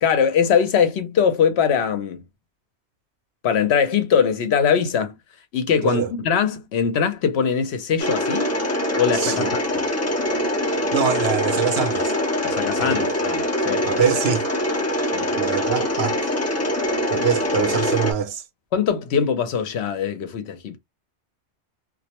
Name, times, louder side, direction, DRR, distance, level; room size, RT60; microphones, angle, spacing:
voice 1, 0.0-2.2 3.4-5.2 5.5-8.5 8.9-9.9 12.4-13.9 15.1-15.3 18.7-20.8, left 7 dB, 70° left, 0.9 m, -21 dB
Mechanisms, 8.0-18.1, left 1 dB, 20° left, 0.4 m, -23 dB
voice 2, 9.1-9.5 10.9-12.1 12.8-12.9 13.7-14.5 15.3-16.3 17.1-18.4, right 8 dB, 70° right, 0.8 m, -24 dB
2.3 x 2.1 x 2.8 m
omnidirectional pair, 1.2 m